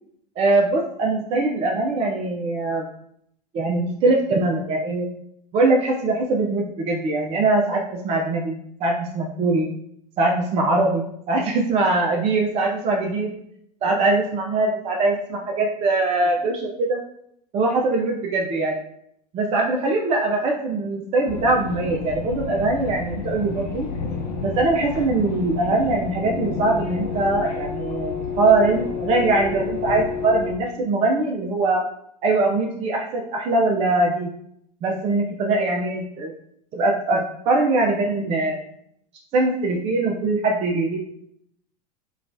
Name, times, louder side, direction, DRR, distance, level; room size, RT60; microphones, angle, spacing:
voice 1, 0.4-2.9 3.5-5.1 5.5-9.7 10.2-13.3 13.8-17.0 17.5-18.8 19.3-23.9 24.4-31.8 32.2-34.3 34.8-36.3 36.7-38.6 39.3-41.0, right 2 dB, 30° right, 0 dB, 0.4 m, -22 dB
sound 1, 21.3-30.5, left 5 dB, 65° left, 0.6 m, -30 dB
2.8 x 2.2 x 2.6 m, 0.72 s
figure-of-eight pair, 85°, 21 cm